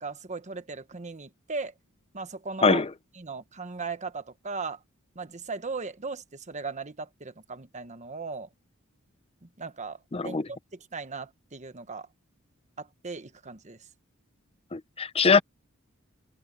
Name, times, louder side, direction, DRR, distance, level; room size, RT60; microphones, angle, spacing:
voice 1, 0.0-1.7 2.1-2.8 3.2-4.8 5.1-8.5 9.4-12.1 12.8-13.8, right 4 dB, 35° right, 1.2 m, -37 dB
voice 2, 10.1-10.5 14.7-15.4, left 4 dB, 30° left, 0.6 m, -22 dB
head